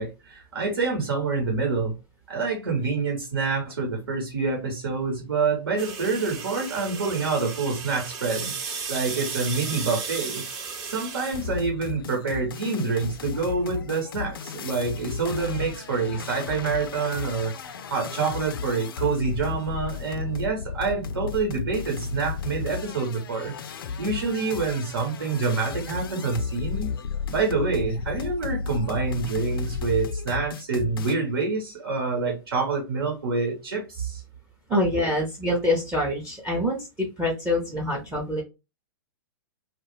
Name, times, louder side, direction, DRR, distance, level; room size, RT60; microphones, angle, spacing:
voice 1, 0.0-1.9 2.3-10.4 10.8-23.5 24.0-26.9 27.3-34.2, right 4 dB, 75° right, 1.1 m, -27 dB
sound 1, 5.8-11.5, right 5 dB, 40° right, 0.9 m, -35 dB
sound 2, 11.3-31.2, left 5 dB, 65° left, 0.4 m, -34 dB
voice 2, 34.7-36.9 37.2-38.4, left 1 dB, 10° right, 0.6 m, -25 dB
2.3 x 2.1 x 3.2 m
figure-of-eight pair, 110°, 13 cm